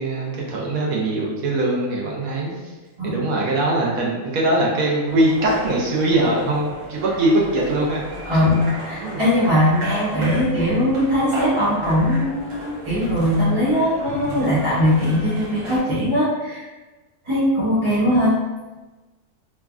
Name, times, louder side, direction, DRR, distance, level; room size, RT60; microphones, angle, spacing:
voice 1, 0.0-2.6 3.0-8.0 9.0-9.2, right 1 dB, 85° right, -3 dB, 1.1 m, -21 dB
sound 1, 5.1-15.8, equal, 70° right, 1.2 m, -35 dB
voice 2, 8.3-16.6 17.2-18.4, left 1 dB, 30° right, -10 dB, 0.6 m, -20 dB
3.1 x 2.3 x 2.3 m, 1.2 s
omnidirectional pair, 1.4 m